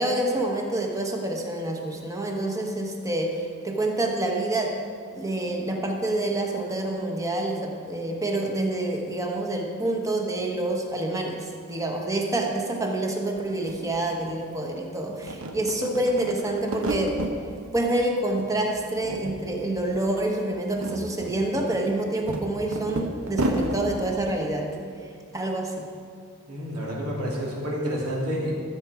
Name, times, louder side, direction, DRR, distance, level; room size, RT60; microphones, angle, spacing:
voice 1, 0.0-4.7 5.1-17.2 17.7-24.7 25.3-25.8, right 1 dB, 15° right, 1 dB, 1.2 m, -27 dB
sound 1, 13.4-13.5 13.7-14.8 15.1-17.4 17.8-18.5 18.8-19.6 19.9-20.0 20.5-23.8, right 1 dB, 65° right, 1.0 m, -31 dB
voice 2, 26.5-28.5, equal, 85° right, -5 dB, 2.9 m, -29 dB
13.5 x 7.3 x 4.9 m, 2.3 s
head